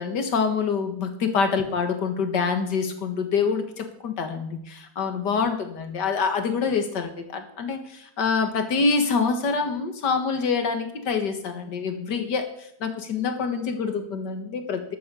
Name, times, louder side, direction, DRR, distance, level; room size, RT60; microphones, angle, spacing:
voice 1, 0.0-12.5 12.8-15.0, left 5 dB, 85° left, 7 dB, 2.2 m, -26 dB
11.5 x 8.9 x 7.0 m, 0.74 s
omnidirectional pair, 1.8 m